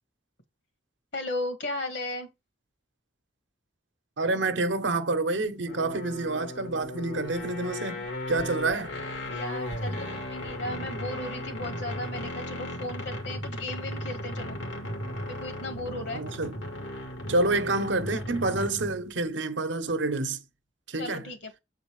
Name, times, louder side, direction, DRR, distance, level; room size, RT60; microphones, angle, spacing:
voice 1, 1.1-2.3 9.3-14.6 15.2-16.3 21.0-21.5, left 1 dB, 65° left, 1.7 m, -36 dB
voice 2, 4.2-8.9 16.1-16.5 17.3-20.4 20.9-21.3, right 2 dB, 75° right, 0.9 m, -28 dB
sound 1, 5.7-19.0, left 1 dB, 80° left, 2.1 m, -36 dB
7.6 x 4.0 x 4.8 m
head